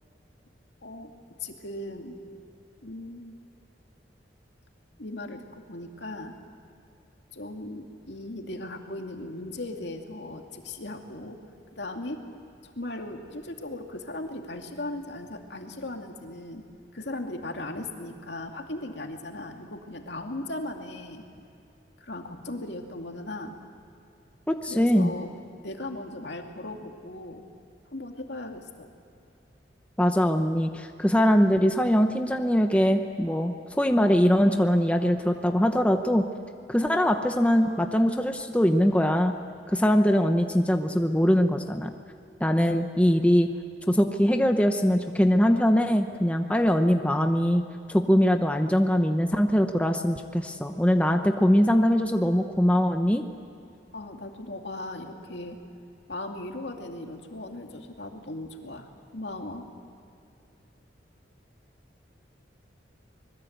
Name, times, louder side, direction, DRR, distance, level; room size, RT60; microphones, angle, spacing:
voice 1, 1.4-2.2 2.8-3.4 5.0-6.4 7.3-11.4 11.8-12.2 12.6-16.6 16.9-21.2 22.0-23.5 24.7-25.3 25.6-27.4 27.9-28.9 53.9-55.6 56.1-59.7, left 2 dB, 65° left, 3 dB, 2.4 m, -37 dB
voice 2, 24.5-25.1 30.0-36.2 36.7-39.3 39.7-41.9 42.4-43.5 43.9-47.6 47.9-53.2, equal, 5° left, 5 dB, 0.8 m, -22 dB
25.0 x 21.5 x 8.1 m, 2.5 s
head